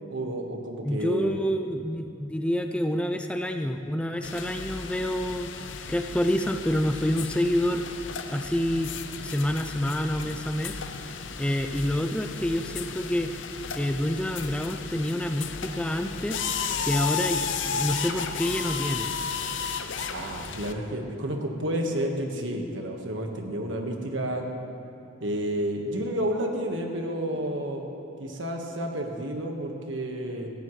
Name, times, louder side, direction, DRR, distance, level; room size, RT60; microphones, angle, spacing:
voice 1, 0.1-1.4 20.1-24.4 25.2-27.8 28.2-30.5, right 1 dB, 70° right, 2 dB, 1.5 m, -30 dB
voice 2, 0.8-5.5 5.9-7.8 8.3-8.9 9.2-10.8 11.4-13.3 13.8-16.4 16.8-19.1, equal, 5° left, 6 dB, 0.4 m, -27 dB
sound 1, 4.2-20.7, left 6 dB, 65° left, 0.7 m, -34 dB
17.5 x 15.0 x 3.2 m, 2.7 s
head